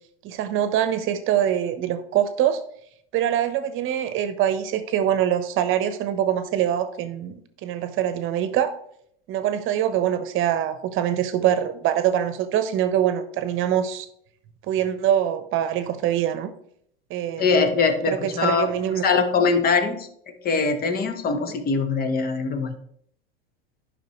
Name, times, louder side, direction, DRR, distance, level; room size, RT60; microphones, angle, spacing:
voice 1, 0.2-2.6 3.1-8.7 9.3-14.1 14.7-16.5 17.1-17.5 18.1-19.2, right 10 dB, 45° right, 11 dB, 1.0 m, -24 dB
voice 2, 17.4-18.7 19.0-20.1 20.4-22.8, left 4 dB, 30° left, 9 dB, 1.1 m, -22 dB
10.5 x 5.7 x 3.1 m, 0.68 s
hypercardioid pair, 105°, 30 cm